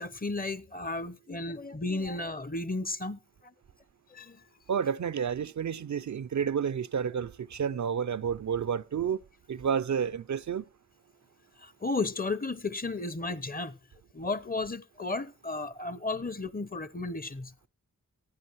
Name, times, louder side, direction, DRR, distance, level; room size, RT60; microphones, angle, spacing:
voice 1, 0.0-3.2 4.1-4.4 11.6-13.7 14.1-17.5, left 3 dB, 25° left, 0.7 m, -33 dB
voice 2, 4.7-9.2 9.5-10.6, right 7 dB, 60° right, 0.5 m, -30 dB
15.5 x 10.0 x 3.0 m
cardioid pair, 45°, 32 cm